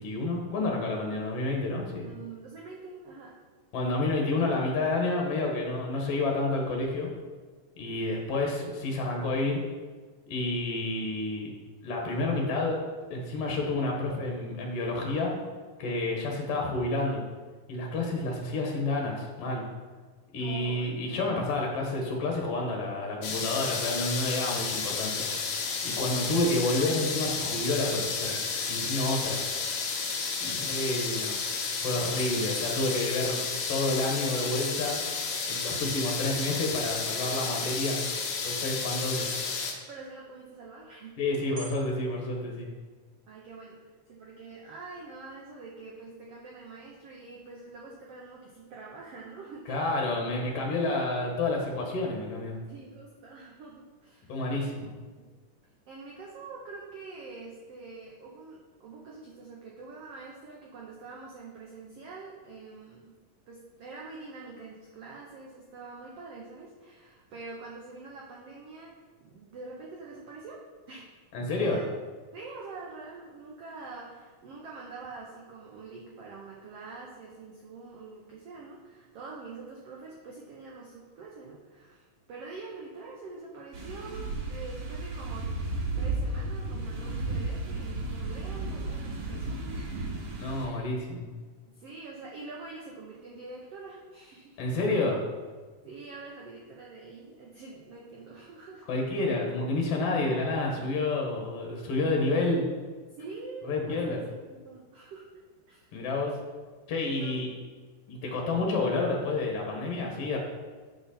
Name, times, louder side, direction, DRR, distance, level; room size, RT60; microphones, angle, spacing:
voice 1, 0.0-2.1 3.7-7.1 7.8-9.6 10.3-11.5 11.8-12.8 13.1-15.3 15.8-17.2 17.7-19.6 20.3-25.3 25.8-28.4 28.7-29.4 30.4-31.3 31.8-33.4 33.7-35.0 35.5-38.0 38.4-39.3 41.2-42.7 49.7-52.6 54.3-54.9 71.3-71.8 90.4-91.3 94.6-95.2 98.9-102.7 103.6-104.2 105.9-106.4 106.9-107.5 108.1-110.4, left 2 dB, 60° left, 0 dB, 1.7 m, -29 dB
voice 2, 2.0-3.3 16.1-16.4 20.4-21.0 39.9-41.2 43.3-43.8 44.1-50.0 52.7-54.4 54.7-55.3 55.9-63.2 63.5-68.9 69.2-70.6 70.9-71.1 71.5-71.9 72.3-85.5 86.0-90.1 90.6-90.9 91.7-94.6 95.8-98.8 103.1-105.2 105.7-106.1 107.0-107.5, right 3 dB, 85° right, -3 dB, 1.3 m, -45 dB
sound 1, 23.2-39.7, left 5 dB, 85° left, 1.2 m, -32 dB
sound 2, 24.6-25.7 26.0-27.7 28.3-29.1 29.4-34.9 35.2-35.3 35.6-37.1 37.4-37.5 37.8-38.0 38.6-39.4 41.3-41.8, right 1 dB, 40° right, 1.4 m, -48 dB
sound 3, 83.7-90.7, right 2 dB, 65° right, 1.8 m, -34 dB
7.7 x 5.9 x 4.2 m, 1.4 s
omnidirectional pair, 4.0 m